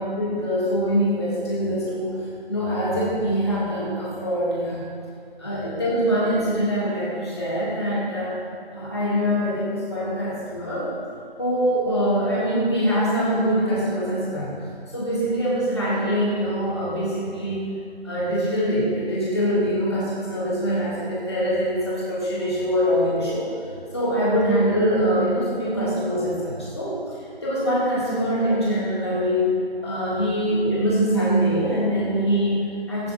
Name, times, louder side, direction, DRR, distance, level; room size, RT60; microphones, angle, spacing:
voice 1, 0.0-2.2 2.5-4.8 5.4-8.4 8.7-10.9 11.4-17.7 18.0-23.5 23.9-27.1 27.4-33.1, equal, 25° left, -8 dB, 2.3 m, -23 dB
16.0 x 9.7 x 2.6 m, 2.5 s
figure-of-eight pair, 170°, 31 cm